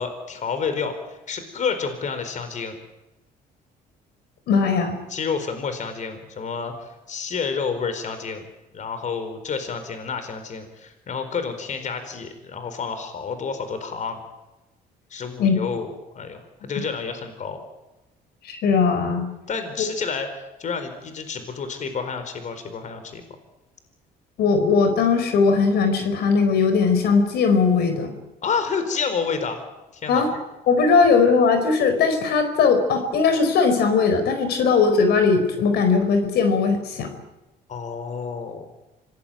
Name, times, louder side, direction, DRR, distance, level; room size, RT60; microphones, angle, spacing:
voice 1, 0.0-2.8 5.1-8.4 8.7-14.2 15.1-17.6 19.5-23.2 28.4-29.6 29.9-30.2 31.0-31.1 37.7-38.6, left 5 dB, 45° left, 8 dB, 4.4 m, -29 dB
voice 2, 4.5-5.0 15.4-15.6 18.4-19.3 24.4-28.1 30.1-30.3 30.7-37.1, left 5 dB, 70° left, 8 dB, 4.7 m, -19 dB
26.0 x 19.0 x 9.1 m, 1.0 s
cardioid pair, 110°, 17 cm